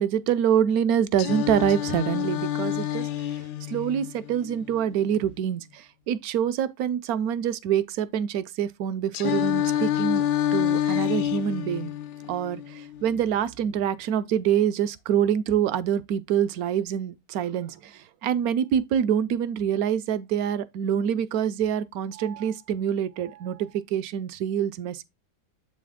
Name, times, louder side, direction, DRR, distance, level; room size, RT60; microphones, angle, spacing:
voice 1, 0.0-3.4 3.7-10.3 10.5-11.9 12.3-25.0, right 9 dB, 70° right, 1.0 m, -26 dB
Singing, 1.2-5.2 9.1-13.2, left 11 dB, 80° left, 1.2 m, -28 dB
7.7 x 4.2 x 3.5 m
omnidirectional pair, 1.8 m